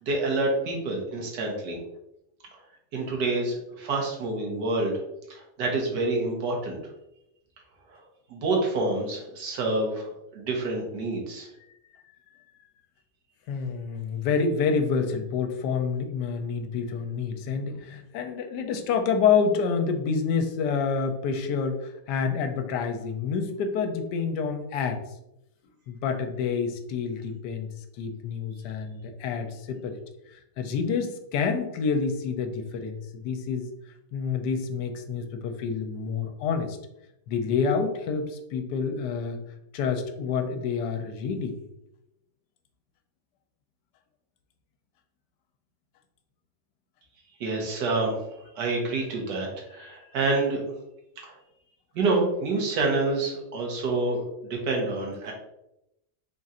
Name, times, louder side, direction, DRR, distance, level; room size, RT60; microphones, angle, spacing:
voice 1, 0.0-1.8 2.9-5.0 5.3-6.8 7.9-8.0 8.3-11.5 47.4-50.6 51.2-51.3 51.9-55.3, right 2 dB, 75° right, 0 dB, 1.6 m, -28 dB
voice 2, 13.5-25.0 25.9-27.7 28.0-30.0 30.3-33.7 34.1-36.8 37.3-39.4 39.7-41.6 49.8-50.1, left 5 dB, 80° left, 6 dB, 1.1 m, -28 dB
3.8 x 2.5 x 4.1 m, 0.87 s
omnidirectional pair, 1.8 m